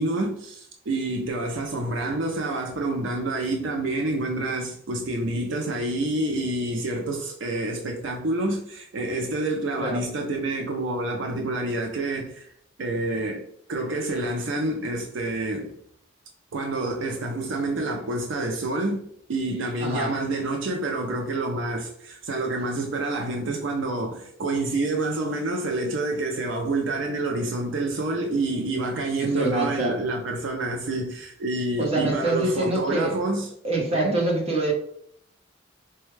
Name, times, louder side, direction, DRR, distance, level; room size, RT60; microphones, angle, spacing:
voice 1, 0.0-12.5 12.8-15.8 16.5-33.5 33.9-34.2, right 2 dB, 75° right, 0.5 m, -28 dB
voice 2, 19.8-20.2 23.2-23.3 29.2-30.0 31.8-33.2 33.6-34.7, right 2 dB, 30° right, 0.9 m, -25 dB
4.3 x 2.2 x 3.1 m
head